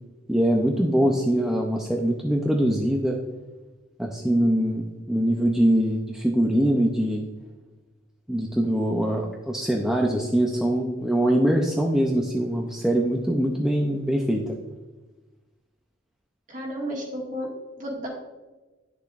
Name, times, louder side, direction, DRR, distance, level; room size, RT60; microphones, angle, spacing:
voice 1, 0.3-3.2 4.0-7.2 8.3-14.6, right 1 dB, 5° right, 0 dB, 0.4 m, -23 dB
voice 2, 16.5-17.5 17.8-18.1, equal, 40° right, -1 dB, 1.8 m, -32 dB
9.7 x 6.7 x 2.4 m, 1.2 s
head